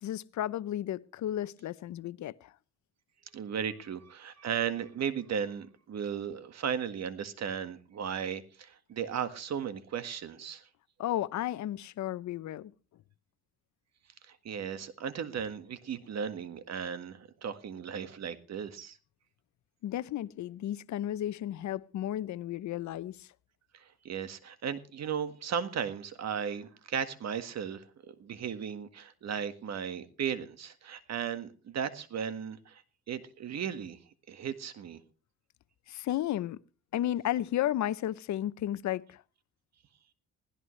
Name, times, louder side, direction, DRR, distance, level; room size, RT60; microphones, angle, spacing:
voice 1, 0.0-2.5 11.0-12.7 19.8-23.3 35.9-36.6 36.9-39.2, left 12 dB, 70° left, 0.7 m, -33 dB
voice 2, 3.3-10.7 14.3-19.0 23.7-32.8 33.1-34.0 34.3-35.0, right 7 dB, 60° right, 1.7 m, -36 dB
21.0 x 16.0 x 3.3 m
cardioid pair, 90°, 30 cm